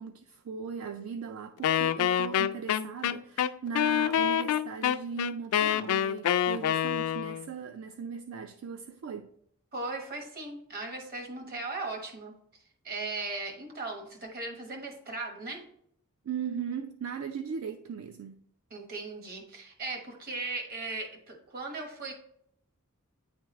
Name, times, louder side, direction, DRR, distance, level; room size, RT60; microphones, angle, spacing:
voice 1, 0.0-9.3 16.2-18.4, right 6 dB, 65° right, 0.3 m, -38 dB
Wind instrument woodwind instrument, 1.6-7.5, left 9 dB, 85° left, 0.3 m, -27 dB
voice 2, 9.7-12.3 12.8-15.7 18.7-22.1, right 3 dB, 45° right, 1.3 m, -37 dB
9.0 x 3.6 x 3.1 m
head